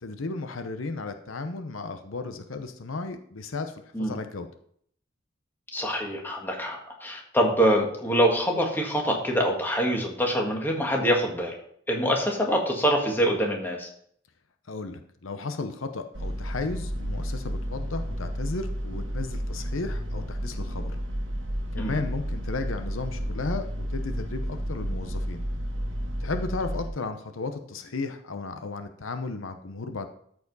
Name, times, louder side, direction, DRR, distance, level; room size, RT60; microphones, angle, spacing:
voice 1, 0.0-4.5 14.7-21.0 21.7-25.4 26.2-30.1, left 3 dB, 90° left, 8 dB, 0.8 m, -34 dB
voice 2, 5.7-11.6 11.9-13.9 21.8-22.0, equal, 10° left, 0 dB, 1.6 m, -25 dB
sound 1, 16.1-26.9, equal, 75° right, 1.3 m, -32 dB
13.5 x 4.8 x 4.0 m, 0.65 s
head